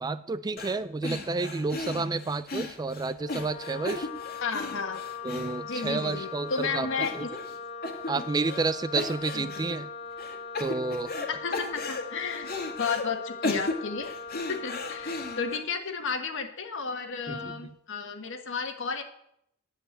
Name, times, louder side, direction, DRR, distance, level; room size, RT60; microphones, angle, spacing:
voice 1, 0.0-4.1 5.2-6.9 7.1-7.2 8.1-9.9 10.6-11.1 17.3-17.6, right 3 dB, 20° right, 13 dB, 0.3 m, -30 dB
sound 1, 0.6-0.8 1.0-6.2 6.5-6.7 7.0-7.6 7.8-8.7 9.0-9.7 10.2-11.3 11.5-13.0 13.4-15.6, left 3 dB, 45° left, 1.8 m, -35 dB
Wind instrument woodwind instrument, 3.2-15.7, left 5 dB, 25° left, 0.9 m, -40 dB
voice 2, 4.4-5.0 5.6-7.3 9.3-9.7 11.3-12.5 12.8-19.0, left 5 dB, 60° left, 6 dB, 1.5 m, -33 dB
9.3 x 7.7 x 8.8 m, 0.74 s
head